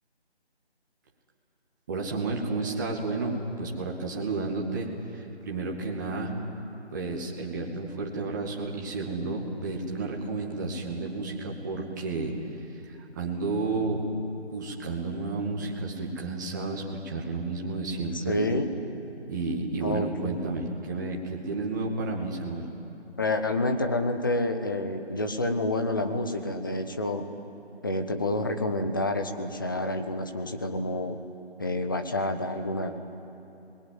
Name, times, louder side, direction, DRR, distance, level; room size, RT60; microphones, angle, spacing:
voice 1, 1.9-6.3 6.9-12.3 12.7-14.0 14.5-18.4 19.3-22.7, right 3 dB, 15° right, -1 dB, 2.2 m, -32 dB
voice 2, 18.1-18.7 19.8-20.6 23.2-27.2 27.8-31.2 31.6-33.0, left 2 dB, 20° left, 6 dB, 1.0 m, -28 dB
30.0 x 21.5 x 9.3 m, 2.9 s
figure-of-eight pair, 160°, 33 cm